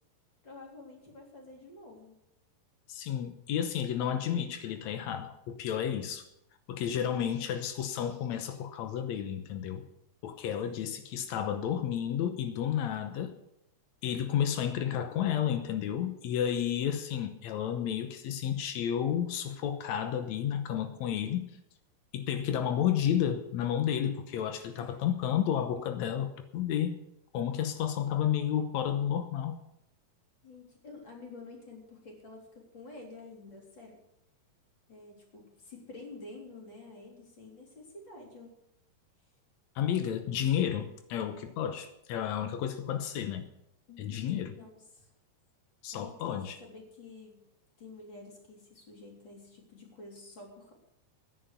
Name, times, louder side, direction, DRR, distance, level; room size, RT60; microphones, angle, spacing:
voice 1, 0.4-2.1 10.7-11.0 24.7-25.0 30.4-34.0 34.9-38.6 43.9-45.1 45.9-47.4 47.8-50.7, left 3 dB, 30° left, -1 dB, 4.0 m, -49 dB
voice 2, 2.9-6.3 6.7-9.8 10.2-13.4 14.0-21.5 22.1-27.0 27.3-29.6 39.7-43.5 44.0-44.5 45.8-46.6, left 9 dB, 85° left, 8 dB, 1.6 m, -31 dB
13.0 x 10.5 x 6.8 m, 0.80 s
omnidirectional pair, 4.5 m